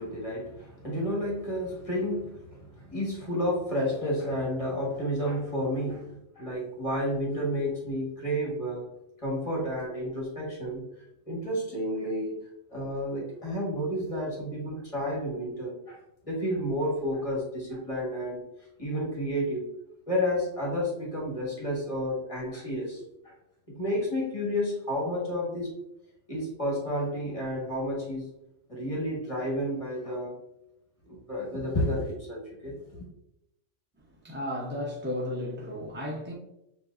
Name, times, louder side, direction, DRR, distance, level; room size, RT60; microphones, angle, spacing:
voice 1, 0.0-8.9 9.2-10.8 11.3-12.4 12.7-18.5 18.8-19.7 20.1-23.3 23.7-25.7 26.3-28.3 28.7-30.4 31.1-33.0, equal, 30° left, -4 dB, 1.3 m, -31 dB
voice 2, 34.0-36.3, left 1 dB, 15° right, -4 dB, 0.4 m, -34 dB
7.0 x 2.6 x 2.4 m, 0.85 s
omnidirectional pair, 1.3 m